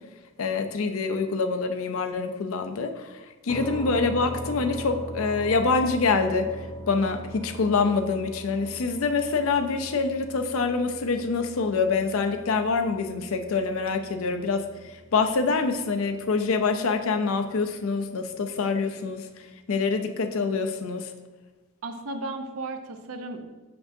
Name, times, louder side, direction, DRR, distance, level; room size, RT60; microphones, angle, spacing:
voice 1, 0.4-3.1 3.4-6.5 6.9-19.3 19.7-21.1, left 4 dB, 75° left, 7 dB, 0.5 m, -25 dB
sound 1, 3.5-17.2, right 1 dB, 10° left, 0.5 m, -41 dB
voice 2, 21.8-23.4, right 2 dB, 80° right, 6 dB, 0.6 m, -34 dB
6.2 x 5.9 x 2.6 m, 1.2 s
head